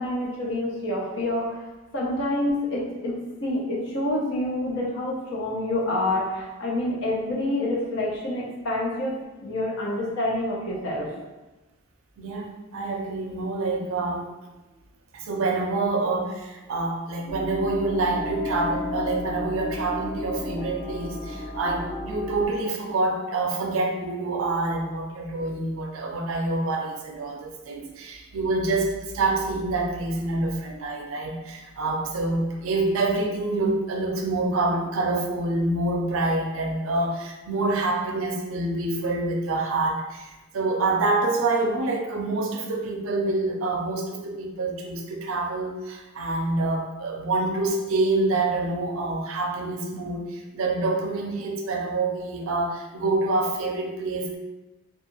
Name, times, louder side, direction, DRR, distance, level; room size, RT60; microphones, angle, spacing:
voice 1, 0.0-1.5 1.9-3.1 3.4-9.1 9.4-11.1, left 1 dB, 60° left, -4 dB, 0.7 m, -27 dB
voice 2, 12.2-14.3 15.1-54.4, right 2 dB, 70° right, 1 dB, 0.4 m, -26 dB
sound 1, 17.3-22.5, left 2 dB, 25° left, 0.5 m, -33 dB
2.4 x 2.3 x 3.0 m, 1.1 s
head